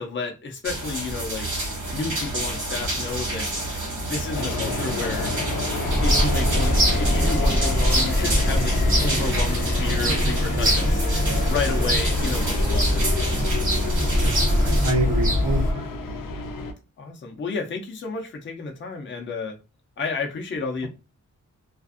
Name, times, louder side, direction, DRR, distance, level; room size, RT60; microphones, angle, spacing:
voice 1, 0.0-1.5 1.9-3.5 4.1-5.3 6.0-11.0 11.4-13.4 17.0-19.6 20.0-20.9, left 4 dB, 35° left, 0.5 m, -31 dB
sound 1, 0.6-14.9, right 1 dB, 70° right, 1.2 m, -30 dB
sound 2, 4.3-16.7, left 4 dB, 85° left, 0.5 m, -30 dB
sound 3, 5.8-15.7, equal, 25° right, 0.6 m, -22 dB
voice 2, 14.2-16.2, equal, 90° right, 0.9 m, -28 dB
2.5 x 2.4 x 2.4 m
wide cardioid pair, 165°, 32 cm